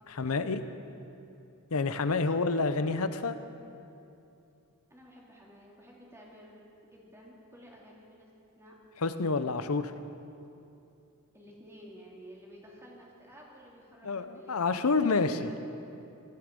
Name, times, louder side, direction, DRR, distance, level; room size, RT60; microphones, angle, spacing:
voice 1, 0.1-0.6 1.7-3.4 9.0-9.9 14.0-15.5, left 4 dB, 70° left, 11 dB, 0.8 m, -28 dB
voice 2, 2.2-3.0 4.9-8.3 8.6-8.8 11.3-15.6, equal, 10° right, -4 dB, 2.6 m, -53 dB
17.5 x 13.0 x 5.3 m, 2.7 s
head